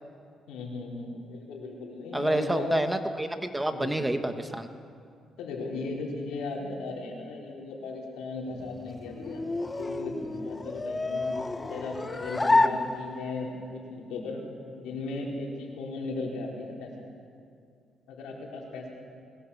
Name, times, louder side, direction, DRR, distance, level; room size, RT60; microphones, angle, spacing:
voice 1, 0.5-2.9 3.7-4.0 5.4-9.4 9.8-11.3 11.7-14.4 14.7-16.9 18.1-18.9, left 3 dB, 90° left, -1 dB, 4.4 m, -36 dB
voice 2, 2.1-4.7, right 1 dB, 10° right, 7 dB, 1.4 m, -28 dB
sound 1, 8.5-13.5, left 2 dB, 20° left, 0.8 m, -29 dB
21.5 x 19.0 x 7.3 m, 2.3 s
cardioid pair, 90°, 0 cm